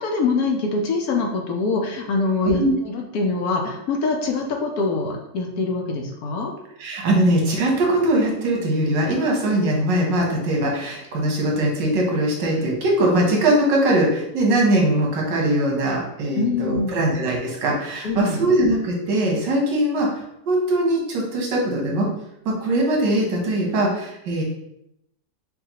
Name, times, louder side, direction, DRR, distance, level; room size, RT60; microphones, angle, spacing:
voice 1, 0.0-6.5 16.4-17.1 18.0-18.4, left 3 dB, 65° left, 1 dB, 1.0 m, -24 dB
voice 2, 6.8-22.1 22.4-24.4, right 1 dB, 85° right, -1 dB, 1.7 m, -21 dB
5.6 x 2.4 x 2.9 m, 0.83 s
omnidirectional pair, 1.9 m